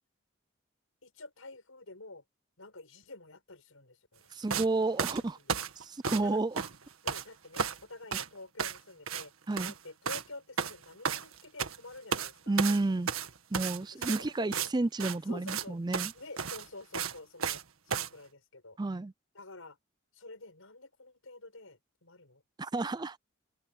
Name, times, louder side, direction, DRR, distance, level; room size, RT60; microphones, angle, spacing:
voice 1, 1.0-2.2 2.6-4.3 4.8-5.2 6.2-6.4 7.0-9.3 9.6-12.8 13.1-13.2 13.9-14.7 15.3-15.8 16.1-18.8 19.3-19.8 20.1-22.4 22.8-22.9, left 2 dB, 80° left, 5.8 m, -49 dB
voice 2, 4.3-5.4 5.8-6.7 9.5-9.7 12.5-13.1 13.5-16.1 18.8-19.1 22.6-23.2, right 2 dB, 20° right, 0.4 m, -31 dB
sound 1, 4.5-4.7 5.0-6.3 6.5-7.2 7.5-7.8 8.1-8.3 8.6-8.8 9.1-9.3 9.5-9.8 10.1-10.3 10.6-11.8 12.1-12.3 12.6-14.7 15.0-15.2 15.5-15.6 15.9-16.1 16.4-17.6 17.9-18.1, right 6 dB, 85° right, 1.7 m, -33 dB
open air
head